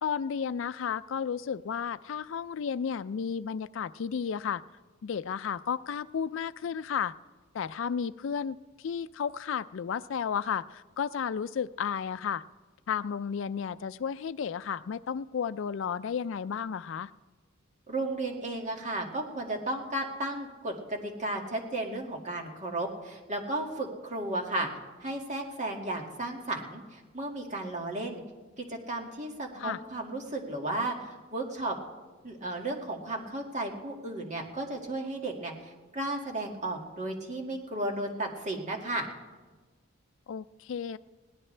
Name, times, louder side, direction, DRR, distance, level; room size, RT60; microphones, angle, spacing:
voice 1, 0.0-4.6 5.0-7.1 7.5-12.4 12.9-17.1 29.6-29.8 40.3-41.0, left 7 dB, 65° left, 15 dB, 0.4 m, -33 dB
voice 2, 17.9-24.7 25.0-28.2 28.6-31.8 32.2-39.1, right 2 dB, 40° right, 1 dB, 2.1 m, -34 dB
21.0 x 17.5 x 3.3 m, 1.3 s
head